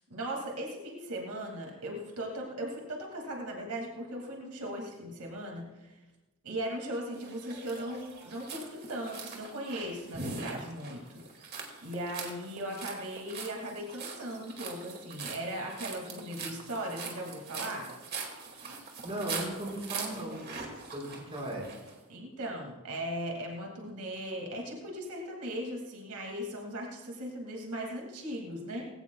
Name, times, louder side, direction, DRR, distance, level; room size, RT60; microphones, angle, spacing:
voice 1, 0.0-6.0 6.4-17.9 22.1-28.9, right 1 dB, 85° right, 0 dB, 2.4 m, -38 dB
sound 1, 7.2-21.9, right 4 dB, 45° right, 2.2 m, -42 dB
voice 2, 18.4-18.8 19.0-20.4 20.8-21.7, right 1 dB, 25° right, -3 dB, 5.2 m, -37 dB
19.5 x 16.5 x 2.3 m, 1.1 s
head